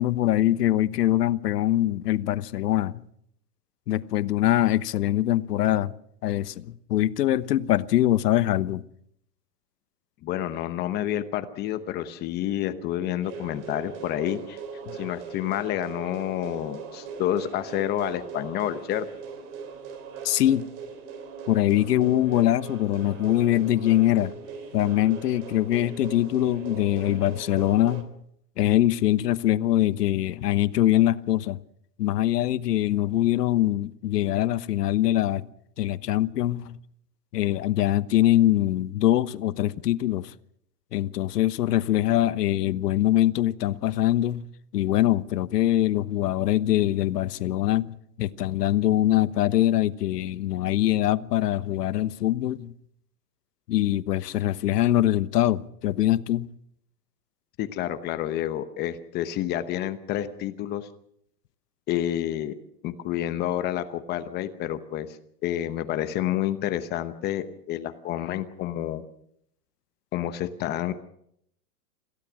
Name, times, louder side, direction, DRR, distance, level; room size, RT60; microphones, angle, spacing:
voice 1, 0.0-3.0 3.9-5.9 6.2-8.8 14.9-15.0 20.2-20.7 21.5-24.3 24.7-28.1 28.6-31.6 32.0-35.4 35.8-36.8 37.3-40.3 40.9-44.5 44.7-52.7 53.7-56.5, left 13 dB, 75° left, 1.2 m, -23 dB
voice 2, 10.2-14.6 14.9-19.1 57.6-60.9 61.9-62.5 62.8-65.2 65.4-69.0 70.1-70.9, left 12 dB, 20° left, 0.9 m, -29 dB
sound 1, 13.2-28.0, right 5 dB, 40° right, 3.5 m, -40 dB
26.5 x 16.0 x 6.2 m
supercardioid pair, 155°, 48 cm